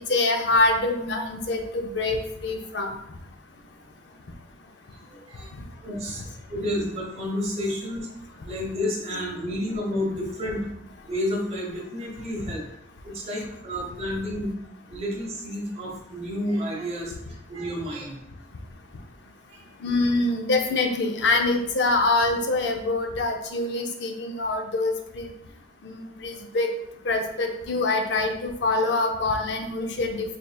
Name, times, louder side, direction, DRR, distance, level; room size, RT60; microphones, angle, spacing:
voice 1, 0.1-3.0 19.8-25.3 25.8-26.7 27.0-30.4, left 2 dB, 70° left, 4 dB, 0.5 m, -25 dB
voice 2, 4.9-5.5 5.8-8.1 8.5-10.7 11.1-12.6 13.0-14.6 14.9-18.2 19.5-19.6, left 1 dB, 35° right, -2 dB, 0.9 m, -30 dB
4.2 x 3.3 x 2.3 m, 0.76 s
head